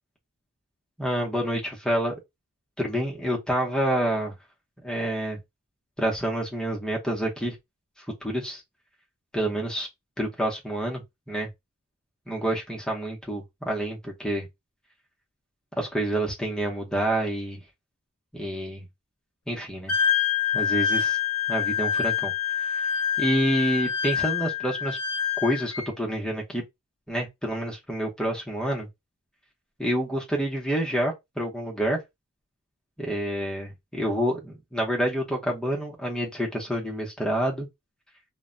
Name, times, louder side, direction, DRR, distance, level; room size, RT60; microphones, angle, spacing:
voice 1, 1.0-2.2 2.8-4.3 4.8-5.4 6.0-7.6 8.0-8.6 9.3-9.9 10.2-11.5 12.3-14.5 15.8-17.7 18.3-18.9 19.5-19.9 20.5-21.2 21.5-22.9 23.2-25.0 25.4-26.6 27.1-28.9 29.8-32.0 33.0-37.7, right 1 dB, 5° left, 0.7 m, -28 dB
Wind instrument woodwind instrument, 19.9-25.9, left 8 dB, 85° left, 0.6 m, -26 dB
2.1 x 2.1 x 3.6 m
head